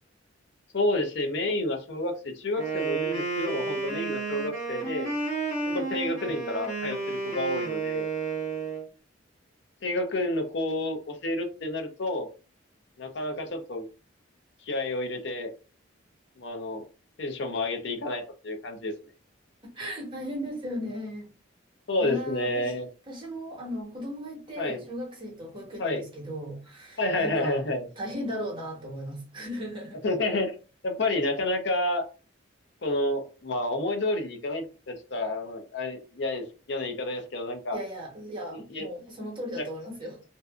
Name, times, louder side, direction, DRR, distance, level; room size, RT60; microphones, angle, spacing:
voice 1, 0.7-5.1 5.7-8.1 9.8-12.3 13.0-13.9 14.6-15.5 16.4-16.8 17.2-18.9 21.9-22.9 24.6-24.8 25.8-26.0 27.0-27.9 30.0-30.6 30.8-32.0 32.8-37.8 38.5-38.9 39.6-39.7, left 2 dB, 60° left, 0.6 m, -30 dB
Wind instrument woodwind instrument, 2.6-8.8, right 4 dB, 40° left, 1.4 m, -31 dB
voice 2, 19.7-21.3 22.0-22.7 23.1-27.6 28.0-30.0 37.7-40.2, equal, 25° right, 1.0 m, -36 dB
2.6 x 2.4 x 2.4 m
head